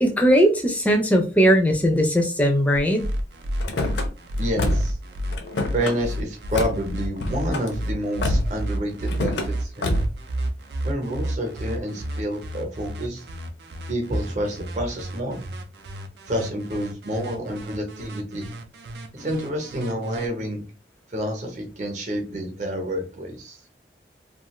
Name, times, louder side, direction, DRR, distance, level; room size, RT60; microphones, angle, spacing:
voice 1, 0.0-3.1, equal, 10° left, 3 dB, 0.4 m, -19 dB
sound 1, 2.7-20.3, right 1 dB, 70° right, 0.4 m, -31 dB
Car / Slam, 3.6-4.1 4.6-5.0 5.3-6.0 6.6-6.8 7.2-7.7 8.2-8.6 9.1-9.5 9.8-10.2, left 1 dB, 80° left, 0.6 m, -25 dB
voice 2, 4.4-5.0 5.7-9.9 10.8-13.2 13.9-15.4 16.3-18.5 19.1-20.6 21.1-23.6, equal, 40° right, 3 dB, 0.8 m, -28 dB
2.4 x 2.4 x 3.0 m, 0.33 s
head